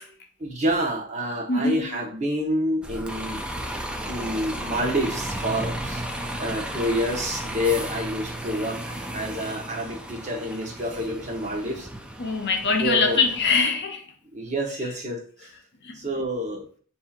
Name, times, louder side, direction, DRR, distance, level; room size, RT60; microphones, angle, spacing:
voice 1, 0.4-3.4 4.1-6.1 6.4-11.9 12.8-13.2 14.3-15.5 15.9-16.7, equal, 35° right, 0.9 m, -28 dB
voice 2, 1.5-2.0 12.2-14.0 15.8-16.0, left 4 dB, 55° left, 0.7 m, -23 dB
Bus, 2.8-13.6, right 1 dB, 5° right, 0.3 m, -34 dB
7.1 x 2.7 x 2.4 m
head